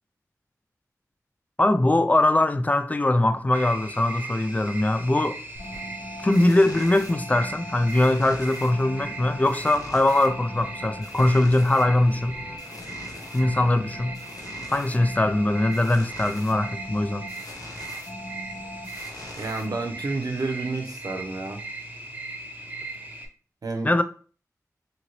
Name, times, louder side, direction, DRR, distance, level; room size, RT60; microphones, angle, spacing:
voice 1, 1.6-5.4 6.2-12.4 13.3-14.2 14.7-17.3 23.8-24.0, left 1 dB, 25° left, 0.3 m, -21 dB
sound 1, 3.5-23.3, right 2 dB, 25° right, 0.6 m, -38 dB
sound 2, 5.6-20.2, left 1 dB, 75° left, 0.6 m, -41 dB
voice 2, 19.4-21.6 23.6-24.0, right 3 dB, 80° right, 0.6 m, -30 dB
2.8 x 2.7 x 2.9 m
cardioid pair, 40°, 6 cm